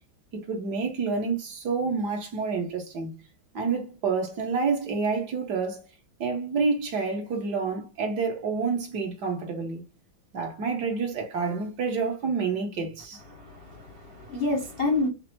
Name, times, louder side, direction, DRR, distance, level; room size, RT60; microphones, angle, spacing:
voice 1, 0.3-3.1 3.5-5.8 6.2-9.8 10.3-13.2, right 4 dB, 60° right, 1.5 m, -28 dB
voice 2, 13.3-15.1, left 2 dB, 50° left, 0.7 m, -28 dB
5.5 x 2.1 x 3.0 m
omnidirectional pair, 2.2 m